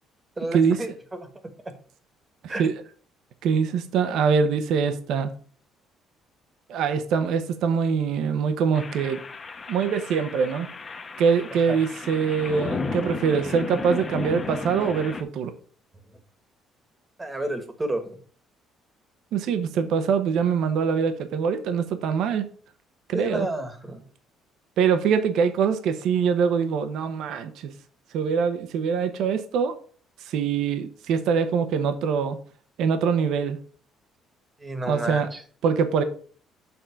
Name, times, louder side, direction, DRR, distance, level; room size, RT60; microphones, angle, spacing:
voice 1, 0.4-1.3 2.5-2.7 11.7-11.8 17.2-18.0 23.1-24.0 34.6-35.4, right 1 dB, 15° right, 8 dB, 1.4 m, -31 dB
voice 2, 3.4-5.3 6.7-9.2 9.7-10.7 11.2-15.5 19.3-22.4 23.1-23.5 24.8-27.7 28.1-29.7 30.2-32.4 32.8-33.6 34.9-35.3 35.6-36.0, right 6 dB, 70° right, 9 dB, 0.8 m, -23 dB
sound 1, 8.7-15.2, left 4 dB, 25° left, 0.9 m, -34 dB
7.0 x 3.8 x 5.7 m, 0.43 s
cardioid pair, 125°, 0 cm